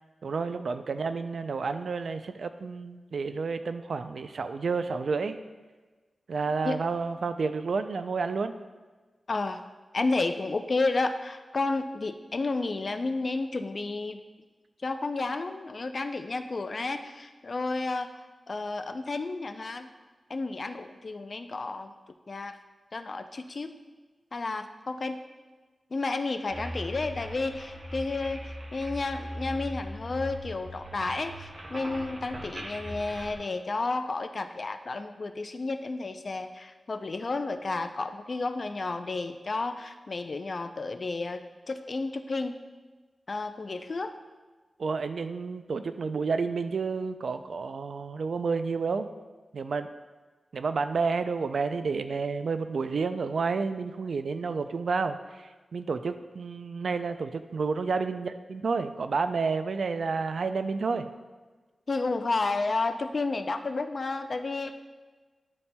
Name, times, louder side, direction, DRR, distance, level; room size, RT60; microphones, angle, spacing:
voice 1, 0.2-5.4 6.3-8.5 44.8-49.1 49.5-49.9 50.5-61.1, right 4 dB, 80° right, 10 dB, 0.3 m, -30 dB
voice 2, 9.3-9.6 9.9-14.2 14.8-18.1 18.5-19.9 20.3-21.9 22.3-22.6 22.9-23.8 24.3-25.2 25.9-42.6 43.3-44.2 61.9-64.7, left 3 dB, 50° left, 8 dB, 0.4 m, -31 dB
sound 1, 26.5-33.4, equal, 40° right, 0.8 m, -40 dB
10.5 x 4.2 x 2.2 m, 1.3 s
wide cardioid pair, 100°, 0 cm